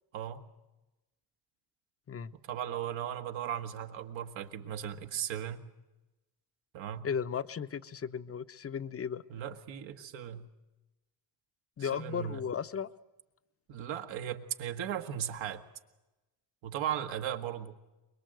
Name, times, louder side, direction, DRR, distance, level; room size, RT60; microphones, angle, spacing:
voice 1, 0.1-0.4 2.3-5.6 6.7-7.1 9.3-10.5 11.8-12.4 13.7-15.6 16.6-17.7, right 10 dB, 80° right, 5 dB, 1.7 m, -37 dB
voice 2, 7.0-9.2 11.8-12.9, left 7 dB, 30° left, 14 dB, 0.8 m, -35 dB
23.5 x 21.5 x 7.8 m, 1.0 s
cardioid pair, 95°, 45 cm